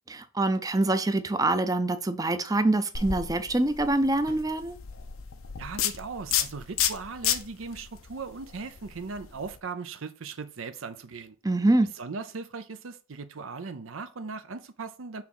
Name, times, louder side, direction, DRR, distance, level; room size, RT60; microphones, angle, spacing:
voice 1, 0.1-4.8 11.4-11.9, right 2 dB, 15° right, 0.5 m, -25 dB
sound 1, 2.9-9.6, left 9 dB, 85° left, 0.8 m, -32 dB
voice 2, 5.6-11.3 12.0-15.2, right 4 dB, 70° right, 0.6 m, -38 dB
5.8 x 3.7 x 6.0 m
head